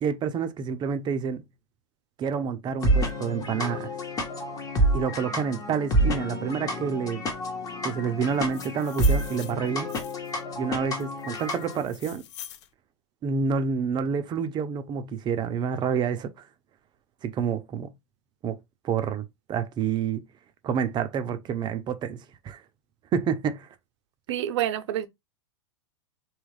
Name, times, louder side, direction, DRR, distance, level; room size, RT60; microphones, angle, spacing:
voice 1, 0.0-1.4 2.2-3.9 4.9-7.2 7.8-9.9 10.6-12.2 13.2-16.3 17.2-17.9 18.4-18.6 18.8-20.2 20.6-22.6 23.1-23.7, right 6 dB, 30° right, 0.5 m, -28 dB
sound 1, 2.8-11.8, right 1 dB, 25° left, 0.9 m, -28 dB
sound 2, 8.3-10.4 11.0-12.7, left 11 dB, 70° left, 0.5 m, -44 dB
voice 2, 24.3-25.1, right 12 dB, 70° right, 0.6 m, -27 dB
3.0 x 2.3 x 3.3 m
hypercardioid pair, 120°, 15 cm